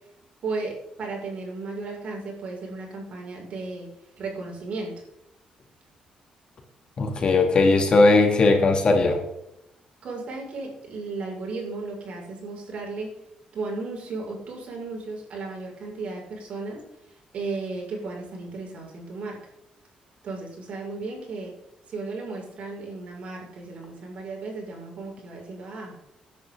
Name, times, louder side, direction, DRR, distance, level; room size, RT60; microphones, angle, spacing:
voice 1, 0.4-3.9 4.2-4.9 10.0-13.2 13.5-16.8 17.3-19.4 20.2-21.5 21.9-26.0, right 3 dB, 60° right, -1 dB, 6.1 m, -35 dB
voice 2, 7.0-9.2, left 3 dB, 40° left, 2 dB, 2.9 m, -18 dB
17.5 x 10.5 x 3.9 m, 0.84 s
cardioid pair, 115°, 2 cm